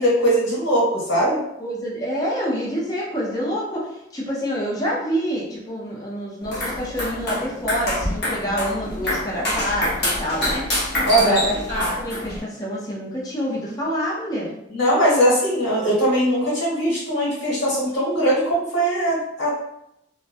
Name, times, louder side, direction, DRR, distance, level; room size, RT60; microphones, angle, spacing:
voice 1, 0.0-1.4 11.1-11.5 14.7-19.5, right 1 dB, 70° left, -6 dB, 1.3 m, -20 dB
voice 2, 1.6-10.6 11.0-11.6 12.0-14.5, equal, 20° left, -5 dB, 0.6 m, -27 dB
sound 1, 6.4-12.4, left 1 dB, 55° left, 1.0 m, -26 dB
2.4 x 2.1 x 2.5 m, 0.81 s
head